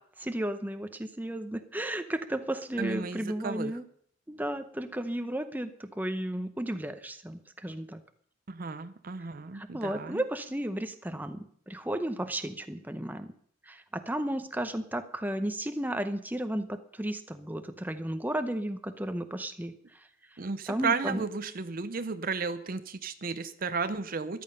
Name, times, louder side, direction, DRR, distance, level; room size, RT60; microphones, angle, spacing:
voice 1, 0.2-3.8 4.3-8.0 9.5-13.3 13.7-19.7 20.7-21.2, right 1 dB, 10° right, 9 dB, 0.7 m, -34 dB
voice 2, 2.8-3.8 8.5-10.2 20.4-24.4, right 4 dB, 40° right, 11 dB, 0.6 m, -33 dB
14.0 x 11.5 x 5.5 m, 0.62 s
head